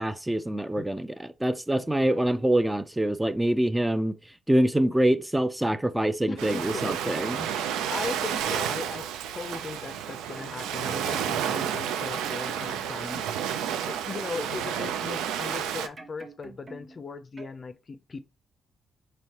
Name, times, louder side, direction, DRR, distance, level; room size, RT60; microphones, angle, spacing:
voice 1, 0.0-4.2 4.5-7.5, right 1 dB, 10° right, 0.4 m, -25 dB
voice 2, 6.3-18.2, left 4 dB, 45° left, 0.5 m, -39 dB
Ocean, 6.4-15.9, right 9 dB, 80° right, 0.3 m, -31 dB
sound 1, 10.1-11.4 11.8-13.3 13.6-15.2 15.5-17.0 17.4-17.6, right 2 dB, 40° right, 0.9 m, -47 dB
4.3 x 3.1 x 2.9 m
supercardioid pair, 50°, 0 cm